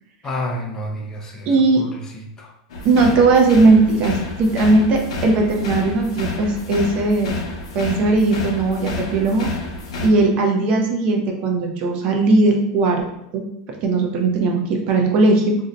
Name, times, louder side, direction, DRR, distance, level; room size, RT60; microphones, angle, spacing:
voice 1, 0.2-2.5, left 1 dB, 20° left, 1 dB, 0.4 m, -30 dB
voice 2, 1.5-1.8 2.8-7.3 7.7-9.5 10.0-13.0 13.3-13.4 13.7-15.6, right 3 dB, 40° right, 2 dB, 0.5 m, -18 dB
sound 1, 2.7-10.1, left 3 dB, 85° left, 0.7 m, -30 dB
2.6 x 2.1 x 3.8 m, 0.79 s
supercardioid pair, 160°, 3 cm